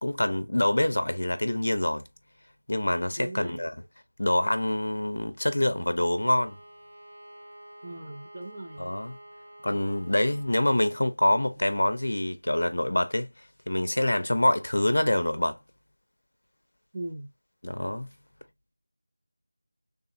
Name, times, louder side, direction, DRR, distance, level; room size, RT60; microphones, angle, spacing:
voice 1, 0.0-2.0 2.7-3.8 4.2-6.6 8.8-9.2 9.6-13.3 13.7-15.6 17.6-18.1, left 1 dB, 55° left, 0.6 m, -26 dB
voice 2, 3.2-3.7 7.8-8.9 16.9-17.3, right 1 dB, 15° right, 0.5 m, -39 dB
Bowed string instrument, 6.0-10.9, right 1 dB, 35° right, 1.4 m, -50 dB
3.5 x 2.8 x 2.7 m
figure-of-eight pair, 180°, 0 cm